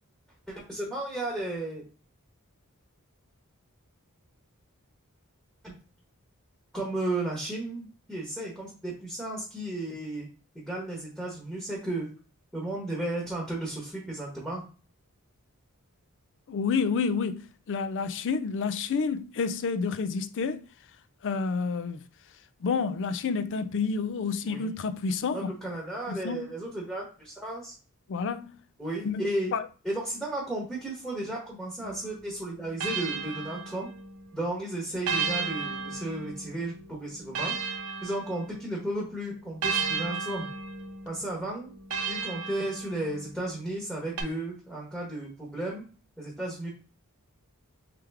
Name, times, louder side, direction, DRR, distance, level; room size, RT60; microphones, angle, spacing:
voice 1, 0.5-1.8 5.6-5.7 6.7-10.3 10.5-12.1 12.5-14.6 24.5-24.7 25.3-27.7 28.8-29.5 29.8-33.9 34.3-37.6 38.0-40.5 41.0-41.7 42.1-45.8 46.2-46.7, right 1 dB, ahead, 1.0 m, -34 dB
voice 2, 16.5-20.7 21.2-22.0 22.6-25.5 26.1-26.5 28.1-28.6 29.0-29.2 29.5-29.7, left 5 dB, 60° left, 0.4 m, -29 dB
sound 1, 31.8-34.3 35.1-38.8 39.6-43.4 44.2-44.3, right 5 dB, 85° right, 0.7 m, -34 dB
3.3 x 3.3 x 3.4 m
head